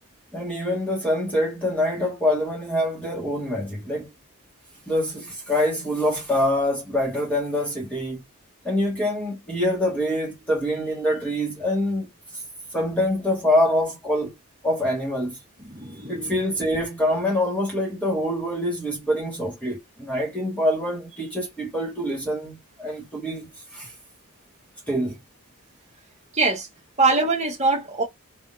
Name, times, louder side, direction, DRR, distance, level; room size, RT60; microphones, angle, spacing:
voice 1, 0.3-4.1 4.9-8.2 8.6-12.1 12.7-14.3 14.6-15.4 16.1-23.9 24.9-25.2, left 1 dB, 5° left, 1.8 m, -25 dB
voice 2, 15.6-16.3 26.3-26.7 27.0-28.0, right 3 dB, 30° right, 1.3 m, -23 dB
3.4 x 3.3 x 2.7 m
head